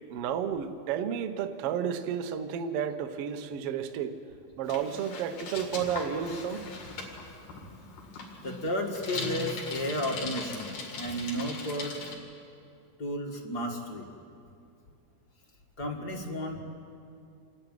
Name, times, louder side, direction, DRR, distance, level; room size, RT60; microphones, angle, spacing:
voice 1, 0.1-4.2 4.6-6.6, right 8 dB, 85° right, 8 dB, 1.3 m, -32 dB
Bicycle, 4.6-12.1, left 4 dB, 65° left, 3.9 m, -40 dB
voice 2, 8.4-12.0 13.0-14.1 15.8-16.6, equal, 35° left, 1 dB, 1.7 m, -33 dB
28.0 x 11.5 x 9.3 m, 2.4 s
omnidirectional pair, 4.2 m